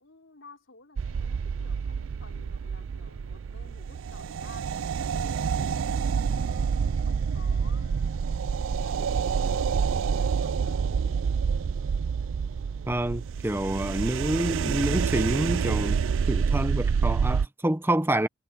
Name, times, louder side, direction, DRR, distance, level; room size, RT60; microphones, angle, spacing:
voice 1, 0.0-8.3 8.8-11.2, left 3 dB, 75° left, 4.1 m, -54 dB
sound 1, 1.0-17.5, right 6 dB, 90° right, 0.4 m, -28 dB
voice 2, 12.9-18.3, right 1 dB, 10° right, 0.8 m, -27 dB
head